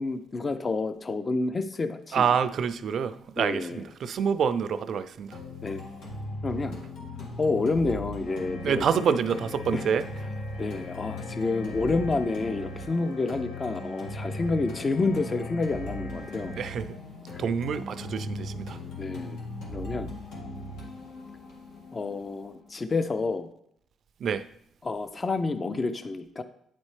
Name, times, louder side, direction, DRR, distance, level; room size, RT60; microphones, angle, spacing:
voice 1, 0.0-2.3 3.4-3.8 5.6-5.8 6.4-6.8 7.4-9.1 9.7-9.9 10.6-16.5 17.3-17.4 19.0-19.4 19.7-20.1 21.9-23.5 24.8-26.4, left 3 dB, 30° left, 10 dB, 0.4 m, -29 dB
voice 2, 2.1-5.4 8.6-10.1 16.2-16.3 16.6-17.0 17.4-18.8 24.2-24.4, right 7 dB, 60° right, 13 dB, 0.4 m, -27 dB
sound 1, 5.3-23.3, left 1 dB, 90° left, 1.8 m, -38 dB
sound 2, 8.3-16.7, left 3 dB, 70° left, 0.7 m, -47 dB
8.9 x 4.2 x 3.2 m, 0.70 s
cardioid pair, 105°, 0 cm